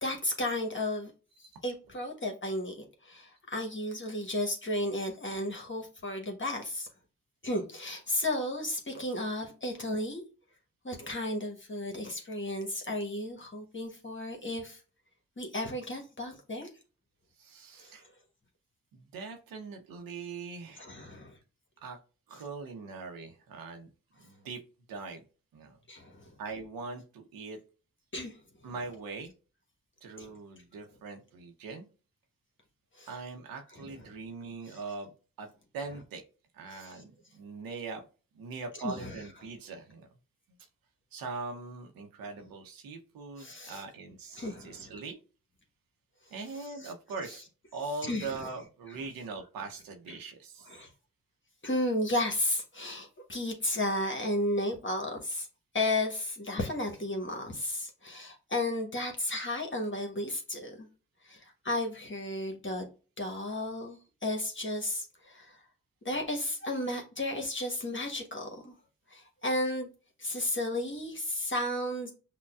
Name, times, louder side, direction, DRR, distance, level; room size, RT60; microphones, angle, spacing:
voice 1, 0.0-1.1 1.6-6.9 7.4-10.2 10.8-14.8 15.4-16.7 17.8-17.9 20.8-21.4 22.3-22.4 25.9-26.3 28.1-28.7 30.2-30.3 32.9-33.1 33.7-33.9 34.7-34.8 36.7-37.0 38.7-39.2 43.4-43.8 44.3-44.9 46.5-46.9 47.2-47.3 48.0-48.5 48.9-49.0 50.1-50.2 50.7-50.9 51.6-55.5 55.7-60.9 61.2-62.9 63.2-65.6 66.0-68.7 69.1-69.9 70.2-72.1, left 1 dB, 35° left, 1.1 m, -34 dB
voice 2, 17.4-18.0 18.9-20.9 21.8-22.0 22.3-23.9 24.2-24.6 24.9-25.2 25.5-25.8 26.4-27.6 28.6-29.3 30.0-31.9 33.1-35.1 35.4-35.5 35.7-36.2 36.5-38.0 38.4-40.1 41.1-45.2 46.3-47.4 47.7-50.7, right 4 dB, 85° right, 0.7 m, -41 dB
5.4 x 2.2 x 2.3 m
supercardioid pair, 45°, 34 cm